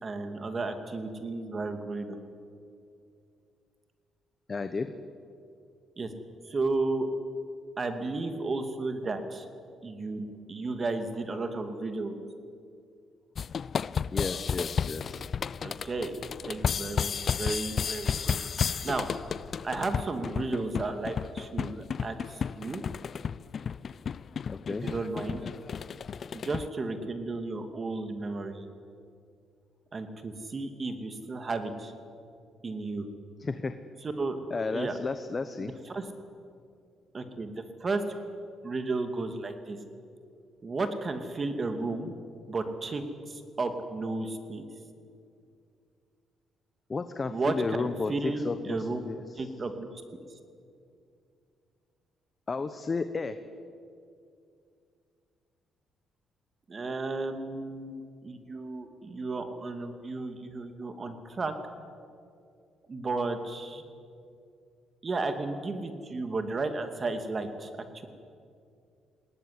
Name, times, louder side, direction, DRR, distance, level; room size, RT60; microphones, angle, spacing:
voice 1, 0.0-2.2 6.0-6.1 6.5-7.1 7.8-9.4 9.8-12.2 15.6-16.1 16.4-18.4 18.8-19.1 19.6-22.8 24.7-25.4 26.3-28.6 29.9-31.9 32.6-33.1 34.2-34.4 34.7-35.0 35.6-36.1 37.1-37.5 37.8-38.0 38.6-39.8 40.6-42.1 42.5-44.6 47.3-49.0 49.4-50.0 56.7-61.5 62.9-63.8 65.0-67.7, right 3 dB, 35° right, 7 dB, 2.6 m, -33 dB
voice 2, 4.5-4.9 14.1-15.3 24.5-24.9 33.4-33.7 34.5-35.7 46.9-49.5 52.5-53.4, left 4 dB, 30° left, 10 dB, 1.1 m, -33 dB
sound 1, 13.4-26.7, left 7 dB, 50° left, 0.5 m, -33 dB
20.5 x 18.0 x 9.7 m, 2.4 s
cardioid pair, 90°, 0 cm